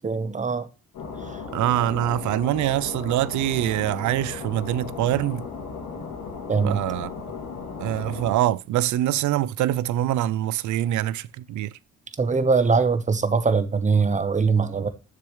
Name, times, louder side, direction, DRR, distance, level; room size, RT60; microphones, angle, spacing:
voice 1, 0.0-0.7 6.5-6.8 12.2-14.9, right 4 dB, 25° right, 0.9 m, -22 dB
sound 1, 0.9-8.3, left 5 dB, 75° left, 2.4 m, -36 dB
voice 2, 1.5-5.5 6.6-7.1 7.8-11.7, right 13 dB, 75° right, 0.5 m, -24 dB
6.8 x 6.7 x 3.1 m
cardioid pair, 90°, 30 cm